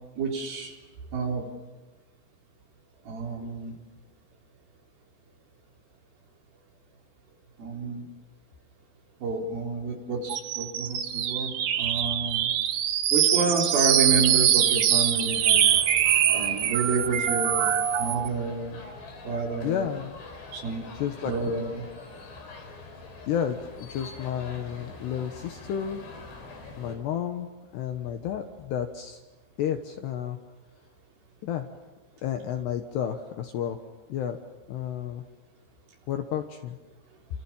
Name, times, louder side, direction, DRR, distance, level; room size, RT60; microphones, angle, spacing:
voice 1, 0.2-0.8 1.1-1.5 3.0-3.7 7.6-8.0 9.2-12.5 13.1-15.7 16.2-18.8 19.2-19.9 20.5-20.9 21.2-21.9, right 4 dB, 50° right, 0 dB, 5.2 m, -29 dB
sound 1, 10.3-18.3, right 10 dB, 70° right, 2.3 m, -23 dB
sound 2, 15.3-27.0, left 3 dB, 55° left, 7.0 m, -44 dB
voice 2, 19.6-20.2 20.9-21.5 23.3-26.0 26.8-29.2 29.6-30.4 31.4-31.7 32.2-33.8 34.1-34.4 34.7-35.2 36.1-36.8, left 9 dB, 70° left, 6 dB, 2.8 m, -31 dB
29.0 x 27.0 x 7.2 m, 1.2 s
omnidirectional pair, 6.0 m